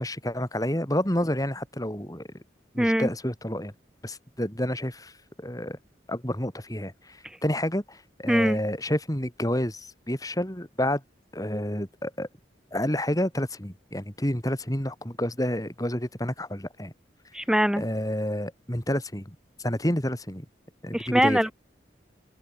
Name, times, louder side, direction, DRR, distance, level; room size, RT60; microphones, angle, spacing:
voice 1, 0.0-2.3 2.7-3.7 4.0-5.1 5.4-5.8 6.1-11.0 11.3-12.3 12.7-16.9 17.8-20.5 20.8-21.4, left 1 dB, 20° left, 4.5 m, -29 dB
voice 2, 2.8-3.1 7.2-7.4 8.3-8.6 17.3-17.8 20.9-21.5, equal, 5° right, 2.7 m, -23 dB
open air
head